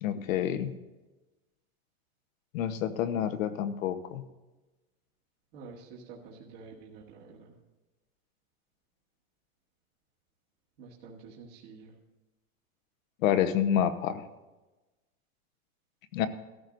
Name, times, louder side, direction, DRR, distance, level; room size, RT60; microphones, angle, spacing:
voice 1, 0.0-0.7 2.5-4.2 13.2-14.2 16.1-16.3, left 9 dB, 80° left, 10 dB, 1.1 m, -28 dB
voice 2, 5.5-7.5 10.8-11.9, right 4 dB, 45° right, -4 dB, 1.8 m, -49 dB
18.0 x 14.0 x 2.6 m, 1.1 s
supercardioid pair, 175°, 40 cm